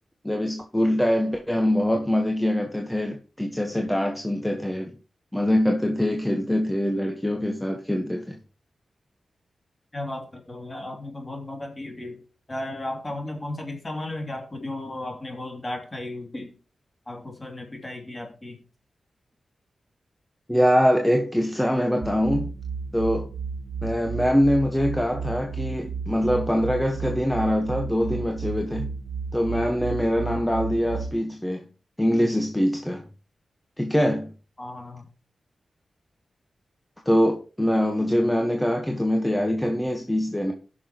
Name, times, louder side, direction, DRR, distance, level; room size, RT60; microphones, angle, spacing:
voice 1, 0.2-4.9 5.3-8.4 20.5-22.5 22.9-23.3 23.8-28.9 29.3-31.6 32.0-33.0 33.8-34.3 37.0-40.5, equal, 10° left, 1.3 m, -23 dB
voice 2, 9.9-12.2 12.5-16.6 17.1-18.6 34.6-35.1, left 1 dB, 30° left, 2.9 m, -35 dB
sound 1, 22.0-31.1, right 5 dB, 60° right, 1.8 m, -33 dB
16.5 x 6.3 x 3.1 m
cardioid pair, 50°, 0 cm